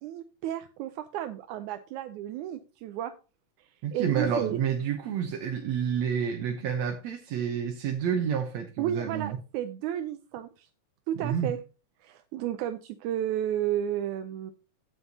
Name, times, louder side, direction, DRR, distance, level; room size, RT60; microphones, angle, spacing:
voice 1, 0.0-3.1 3.6-4.6 8.8-10.7 11.1-11.6 12.0-14.5, right 11 dB, 90° right, 2.1 m, -32 dB
voice 2, 3.8-9.4 11.2-11.5, right 7 dB, 70° right, 2.2 m, -29 dB
16.0 x 5.6 x 2.8 m
omnidirectional pair, 3.4 m